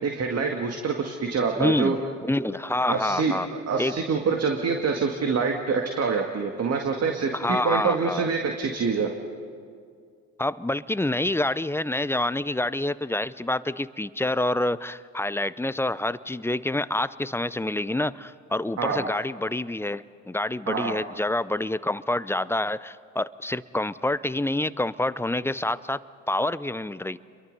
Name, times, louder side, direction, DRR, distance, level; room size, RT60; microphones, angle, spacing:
voice 1, 0.0-2.0 2.9-9.1 18.8-19.1 20.7-21.0, right 5 dB, 40° right, 3 dB, 2.1 m, -26 dB
voice 2, 1.6-2.0 2.2-3.5 3.8-3.9 7.3-8.3 10.4-26.0 26.3-27.2, left 1 dB, 5° left, 17 dB, 0.5 m, -27 dB
30.0 x 23.0 x 5.5 m, 2.2 s
hypercardioid pair, 65°, 38 cm